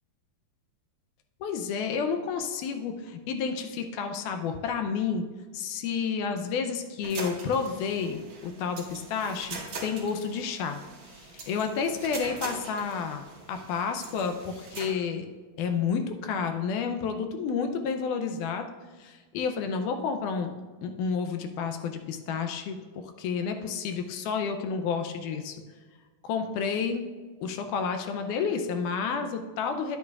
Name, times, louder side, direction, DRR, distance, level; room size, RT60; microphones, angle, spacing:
voice 1, 1.4-5.3 5.5-10.8 11.2-13.2 13.5-15.3 15.6-18.7 19.0-20.5 20.8-22.8 23.2-25.6 26.2-27.0 27.4-30.0, left 6 dB, 80° left, 6 dB, 2.0 m, -30 dB
sound 1, 7.0-14.9, right 3 dB, 55° right, 1.4 m, -42 dB
10.0 x 8.2 x 2.4 m, 1.4 s
omnidirectional pair, 3.9 m